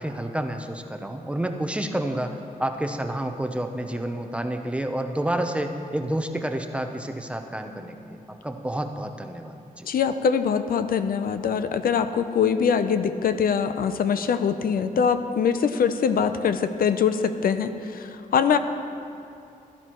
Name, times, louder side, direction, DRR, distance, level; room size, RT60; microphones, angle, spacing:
voice 1, 0.0-9.9, right 1 dB, 10° right, 5 dB, 0.6 m, -29 dB
voice 2, 9.8-18.6, left 7 dB, 80° left, 10 dB, 0.6 m, -23 dB
17.0 x 13.0 x 3.0 m, 2.6 s
wide cardioid pair, 140°, 15 cm